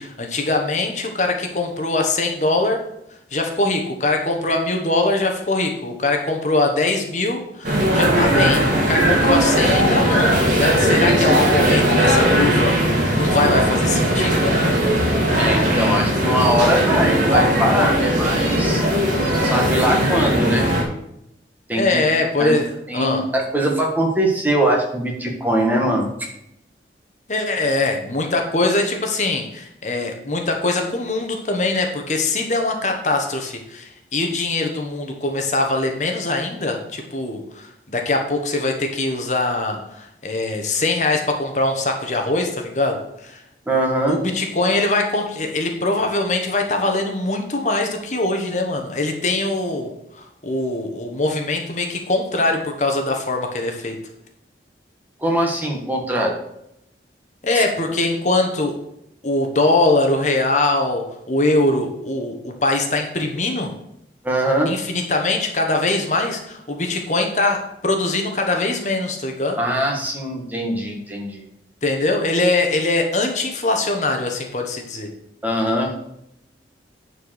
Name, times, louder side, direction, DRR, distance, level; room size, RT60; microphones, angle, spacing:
voice 1, 0.0-2.8 3.3-14.7 21.8-23.2 27.3-43.4 44.1-54.0 57.4-58.7 59.2-63.7 64.7-69.6 71.8-75.1, left 2 dB, 40° left, 3 dB, 1.2 m, -22 dB
sound 1, 7.6-20.8, right 1 dB, 45° right, 2.6 m, -18 dB
voice 2, 11.6-11.9 15.4-18.8 19.4-20.7 21.7-22.1 22.4-22.6 22.9-26.3 43.7-44.2 55.2-56.4 57.5-57.6 64.2-64.7 69.6-71.4 75.4-76.0, right 1 dB, 10° right, 0 dB, 1.6 m, -21 dB
9.9 x 4.6 x 6.4 m, 0.80 s
head